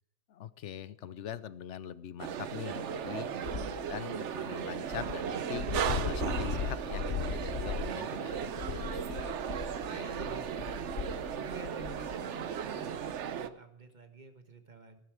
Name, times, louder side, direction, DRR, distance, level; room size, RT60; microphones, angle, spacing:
voice 1, 0.3-9.6 9.9-10.2, left 9 dB, 80° left, 17 dB, 1.0 m, -43 dB
sound 1, 2.2-13.5, right 8 dB, 80° right, 1.1 m, -36 dB
voice 2, 3.1-3.5 10.2-15.0, right 3 dB, 40° right, 7 dB, 1.6 m, -51 dB
Dog, 3.4-4.0 4.6-4.7 4.9-12.2, left 7 dB, 60° left, 0.8 m, -38 dB
14.0 x 12.5 x 4.8 m, 0.79 s
omnidirectional pair, 1.2 m